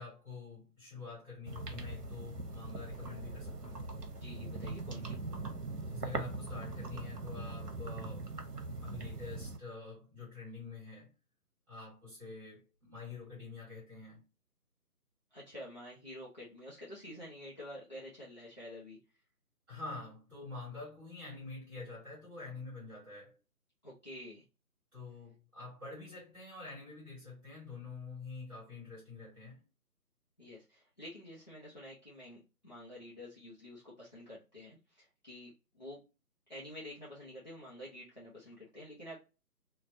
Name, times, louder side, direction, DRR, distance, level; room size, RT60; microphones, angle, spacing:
voice 1, 0.0-3.9 5.9-8.3 8.8-11.1 11.7-14.2 19.7-23.4 24.9-29.6, left 4 dB, 10° right, 1.7 m, -47 dB
sound 1, 1.4-9.6, right 3 dB, 85° right, 0.9 m, -41 dB
voice 2, 4.2-5.2 15.3-19.0 23.8-24.4 30.4-36.0 36.5-39.2, left 1 dB, 30° left, 0.6 m, -49 dB
3.5 x 2.3 x 2.5 m
figure-of-eight pair, 155°, 47 cm